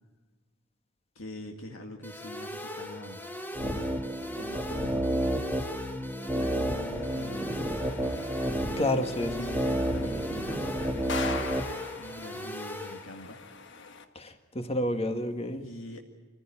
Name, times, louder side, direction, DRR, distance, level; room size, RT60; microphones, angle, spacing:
voice 1, 1.2-3.3 3.6-4.0 4.3-5.5 6.3-8.2 9.3-13.4 15.6-16.0, left 1 dB, 75° left, 2 dB, 2.0 m, -43 dB
sound 1, 2.0-13.0, left 1 dB, 10° left, 1.4 m, -40 dB
sound 2, 3.5-11.7, right 1 dB, 10° right, 1.5 m, -31 dB
sound 3, 6.9-14.0, left 5 dB, 60° left, 1.4 m, -42 dB
voice 2, 8.8-9.4 14.2-15.6, left 1 dB, 30° left, 6 dB, 1.8 m, -29 dB
25.5 x 15.5 x 8.8 m, 1.4 s
head